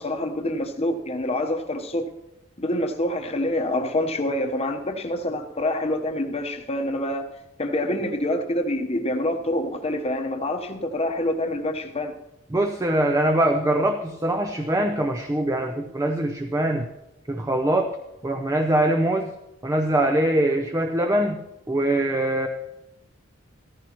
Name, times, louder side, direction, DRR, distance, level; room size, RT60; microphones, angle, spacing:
voice 1, 0.0-2.1 2.6-7.3 7.6-12.1, left 1 dB, 30° left, 5 dB, 1.0 m, -26 dB
voice 2, 12.5-16.9 17.3-18.0 18.2-19.3 19.6-21.4 21.7-22.5, right 1 dB, 15° right, 5 dB, 0.6 m, -23 dB
15.0 x 14.5 x 3.0 m, 0.91 s
head